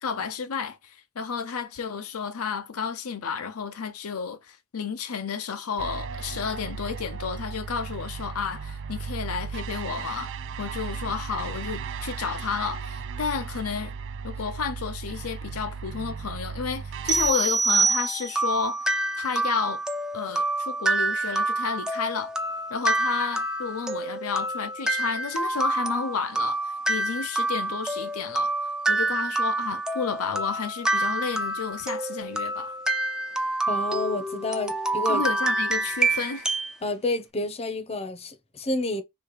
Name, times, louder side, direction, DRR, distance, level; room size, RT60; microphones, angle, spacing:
voice 1, 0.0-10.3 10.6-13.9 14.2-18.8 19.2-19.8 20.1-22.3 22.7-28.5 28.9-32.8 35.1-36.5, left 6 dB, 75° left, 0.6 m, -31 dB
sound 1, 5.8-17.3, right 6 dB, 60° right, 0.4 m, -36 dB
sound 2, 17.1-18.6, right 4 dB, 35° right, 0.7 m, -23 dB
sound 3, 17.9-36.7, right 2 dB, 5° right, 0.5 m, -28 dB
voice 2, 33.7-35.2 36.8-39.0, left 2 dB, 30° left, 0.7 m, -29 dB
3.3 x 3.1 x 4.8 m
head